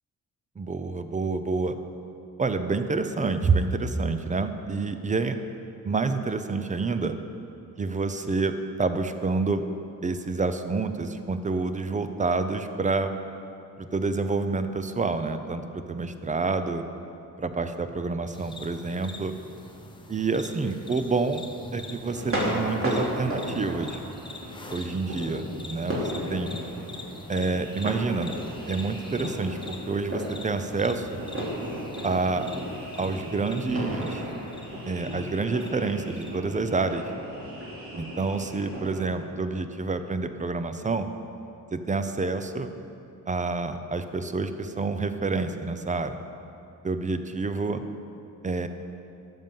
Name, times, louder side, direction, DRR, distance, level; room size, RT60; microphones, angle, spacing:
voice 1, 0.6-1.8 2.4-5.4 5.8-7.2 7.8-9.6 10.0-13.1 13.8-16.8 17.4-19.3 20.1-21.4 21.7-24.0 24.7-26.5 27.3-28.3 28.7-31.2 32.0-32.4 33.0-34.3 34.9-37.0 37.9-41.1 41.7-42.7 43.3-46.1 46.8-47.8 48.4-48.7, right 4 dB, 20° right, 9 dB, 0.5 m, -28 dB
sound 1, 18.3-36.4, left 2 dB, 15° left, 0.8 m, -44 dB
sound 2, 22.1-39.1, equal, 35° right, 2.8 m, -35 dB
13.0 x 5.5 x 7.3 m, 2.7 s
wide cardioid pair, 145°, 36 cm